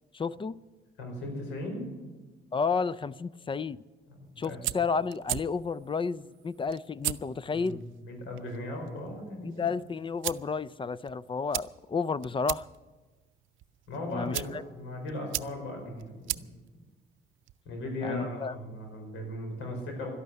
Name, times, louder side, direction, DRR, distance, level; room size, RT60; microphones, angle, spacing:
voice 1, 0.1-0.6 2.5-3.8 4.4-7.8 9.4-12.7 14.1-14.6 18.0-18.5, left 5 dB, 25° left, 0.4 m, -31 dB
voice 2, 1.0-1.9 4.1-4.6 7.5-7.8 8.0-9.7 13.9-16.5 17.7-20.1, left 1 dB, 90° left, 5.1 m, -37 dB
sound 1, 4.2-17.6, right 14 dB, 75° right, 0.5 m, -40 dB
12.5 x 12.0 x 9.3 m
cardioid pair, 90°, 20 cm